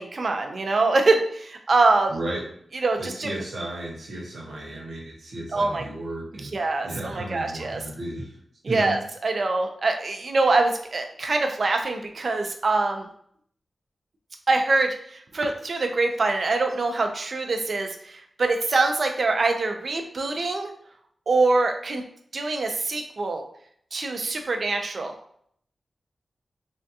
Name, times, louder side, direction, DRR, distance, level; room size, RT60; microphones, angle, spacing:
voice 1, 0.0-2.1 2.8-3.3 5.5-5.8 6.4-7.8 8.6-13.1 14.5-14.9 15.3-20.7 21.3-22.0 22.3-23.4 23.9-25.1, right 3 dB, 45° right, 4 dB, 0.4 m, -24 dB
voice 2, 2.1-2.4 3.0-6.5 6.8-8.4 8.7-9.0, right 1 dB, 90° right, -1 dB, 0.9 m, -34 dB
3.4 x 2.3 x 2.7 m, 0.64 s
wide cardioid pair, 180°, 0 cm